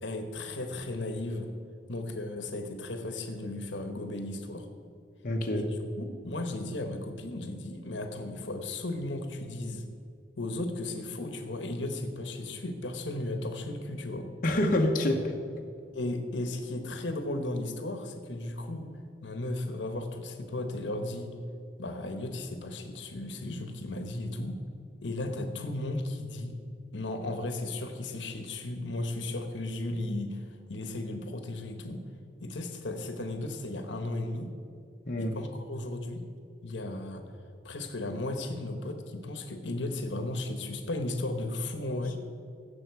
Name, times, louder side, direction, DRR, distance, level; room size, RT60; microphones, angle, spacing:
voice 1, 0.0-1.5 1.9-4.7 6.0-9.8 10.4-14.3 15.9-18.9 19.2-21.3 21.8-24.6 25.0-26.6 26.9-30.4 30.7-32.0 32.4-34.5 35.2-36.3 36.6-37.2 37.6-42.2, left 2 dB, 85° left, 6 dB, 1.1 m, -35 dB
voice 2, 5.2-5.6 14.4-15.3 35.1-35.4, left 1 dB, 50° left, 1 dB, 1.1 m, -26 dB
16.5 x 7.0 x 4.7 m, 2.5 s
head